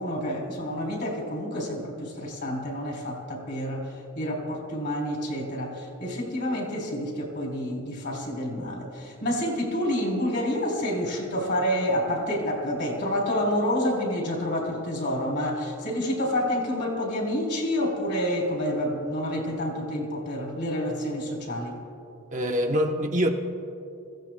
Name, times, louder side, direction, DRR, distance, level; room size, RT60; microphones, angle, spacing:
voice 1, 0.0-3.9 4.1-21.8, equal, 50° left, -1 dB, 3.4 m, -28 dB
voice 2, 22.3-23.3, equal, 35° right, 2 dB, 0.9 m, -24 dB
25.0 x 15.5 x 2.3 m, 2.6 s
head